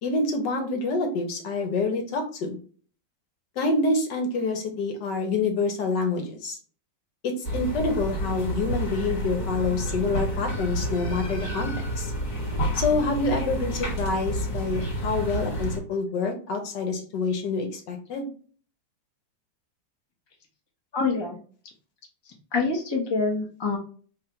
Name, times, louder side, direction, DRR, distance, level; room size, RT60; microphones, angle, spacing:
voice 1, 0.0-2.6 3.6-6.6 7.2-11.7 12.0-12.1 12.7-18.3, left 3 dB, 70° left, 4 dB, 1.5 m, -27 dB
sound 1, 7.4-15.8, equal, 50° left, 1.6 m, -29 dB
voice 2, 20.9-21.4 22.5-23.8, left 4 dB, 20° left, -1 dB, 0.7 m, -25 dB
3.2 x 2.6 x 4.4 m, 0.41 s
omnidirectional pair, 2.0 m